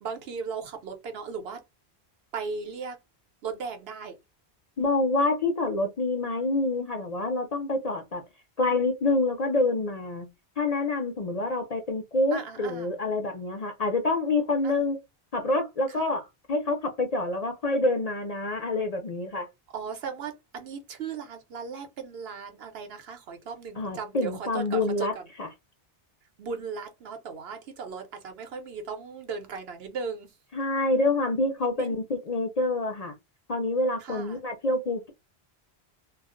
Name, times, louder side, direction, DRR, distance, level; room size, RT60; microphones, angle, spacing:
voice 1, 0.0-1.6 2.3-3.0 3.4-4.2 12.3-12.9 14.6-14.9 19.7-25.3 26.4-30.3 31.8-32.0 34.0-34.4, right 5 dB, 70° right, 0.9 m, -37 dB
voice 2, 4.8-8.2 8.6-10.3 10.6-15.0 15.3-19.5 23.8-25.1 25.4-25.5 30.5-33.1 33.5-35.1, left 2 dB, 45° left, 0.5 m, -27 dB
2.3 x 2.1 x 3.7 m
omnidirectional pair, 1.1 m